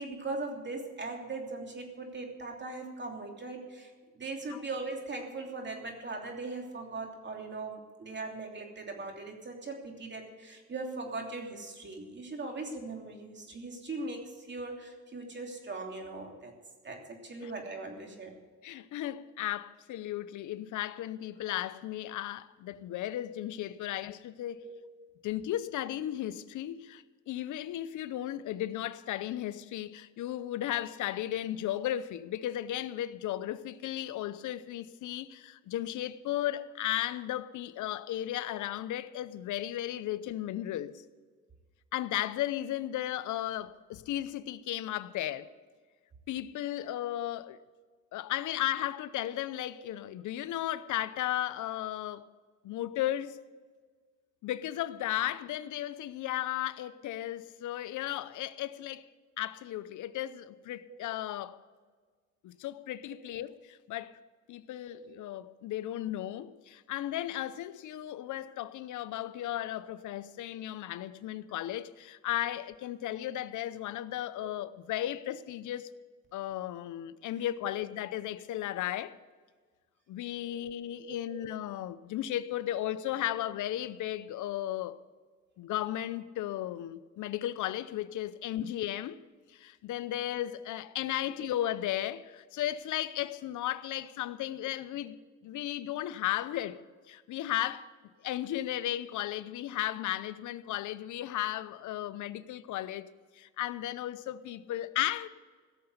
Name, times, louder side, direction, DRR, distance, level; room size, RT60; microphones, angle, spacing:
voice 1, 0.0-16.5 16.8-18.3 24.6-24.7 60.9-61.0 64.9-65.1 69.1-69.2 74.4-74.5 80.4-80.6 81.0-81.4, right 3 dB, 35° right, 3.0 m, -40 dB
voice 2, 18.6-24.6 25.2-41.0 41.9-45.5 46.3-47.6 48.1-52.3 52.6-53.4 54.4-59.1 59.4-61.6 62.4-64.2 64.5-75.9 76.3-79.1 80.1-85.0 85.6-89.2 89.5-96.8 97.1-97.9 98.2-103.1 103.3-105.3, left 13 dB, 80° left, 0.7 m, -35 dB
16.5 x 6.9 x 8.0 m
cardioid pair, 90°, 30 cm